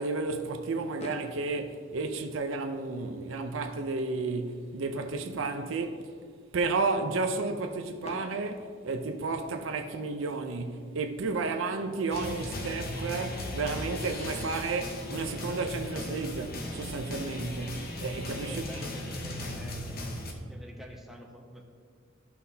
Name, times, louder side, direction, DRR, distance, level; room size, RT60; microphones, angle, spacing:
voice 1, 0.0-6.1 6.5-18.7, right 3 dB, 70° right, 0.5 m, -32 dB
Fireworks, 1.0-3.0 3.8-3.9 4.1-4.3 4.6-4.7 8.0-9.9 11.6-11.7 14.7-14.8 15.2-17.5, left 2 dB, 30° left, 0.5 m, -50 dB
sound 1, 12.1-20.3, left 1 dB, 50° left, 0.9 m, -37 dB
voice 2, 18.5-20.2 20.5-21.6, equal, ahead, 0.8 m, -47 dB
12.5 x 5.8 x 2.8 m
head